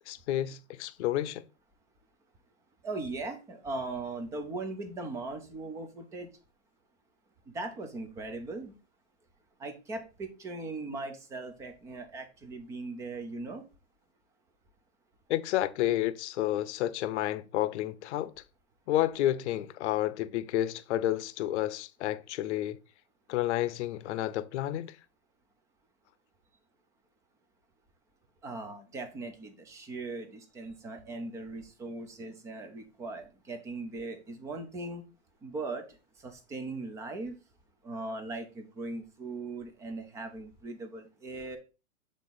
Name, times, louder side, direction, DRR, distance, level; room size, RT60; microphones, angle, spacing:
voice 1, 0.1-1.4 15.3-18.3 18.9-22.8 23.3-25.0, left 13 dB, 55° left, 0.7 m, -30 dB
voice 2, 2.8-6.3 7.5-8.7 9.6-13.6 28.4-35.0 35.4-35.8 36.2-37.3 37.8-41.6, right 3 dB, 10° right, 0.3 m, -39 dB
7.5 x 3.6 x 4.0 m
hypercardioid pair, 120°, 41 cm